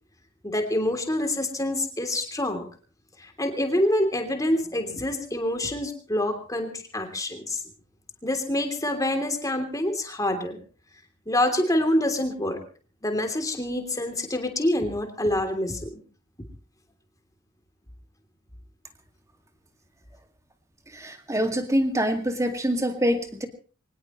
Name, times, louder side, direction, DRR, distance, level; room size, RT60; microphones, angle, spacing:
voice 1, 0.4-2.6 3.2-7.6 8.2-10.6 11.3-12.6 13.0-16.0, left 1 dB, 15° left, 5 dB, 3.1 m, -26 dB
voice 2, 20.9-23.5, equal, 15° right, 6 dB, 2.1 m, -25 dB
23.5 x 19.5 x 3.1 m, 0.39 s
head